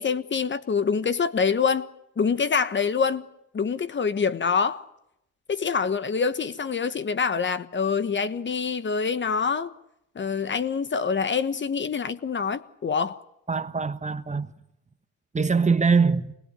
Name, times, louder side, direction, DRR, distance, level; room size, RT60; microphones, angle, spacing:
voice 1, 0.0-1.9 2.2-3.3 3.5-4.9 5.5-9.7 10.1-13.2, left 5 dB, 40° left, 1.3 m, -25 dB
voice 2, 13.5-14.5 15.3-16.4, right 5 dB, 25° right, 1.3 m, -23 dB
26.0 x 20.5 x 9.7 m
cardioid pair, 90°, 30 cm